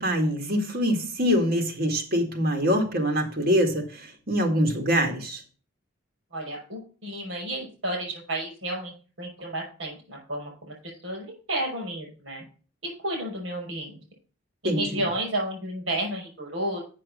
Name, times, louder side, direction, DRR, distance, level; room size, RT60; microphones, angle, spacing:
voice 1, 0.0-5.4 14.6-15.1, equal, 50° right, 3 dB, 2.1 m, -24 dB
voice 2, 6.3-10.7 11.0-12.4 13.0-14.0 14.6-16.8, right 1 dB, 70° right, 0 dB, 5.7 m, -32 dB
7.6 x 6.2 x 6.3 m, 0.38 s
head